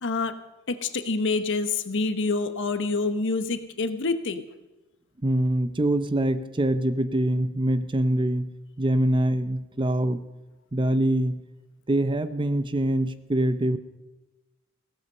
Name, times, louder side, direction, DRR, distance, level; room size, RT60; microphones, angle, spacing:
voice 1, 0.0-4.4, left 3 dB, 60° left, 10 dB, 1.0 m, -27 dB
voice 2, 5.2-8.5 8.8-10.3 10.7-11.4 11.9-13.8, right 1 dB, 20° right, 12 dB, 0.6 m, -24 dB
16.5 x 13.0 x 5.4 m, 1.1 s
head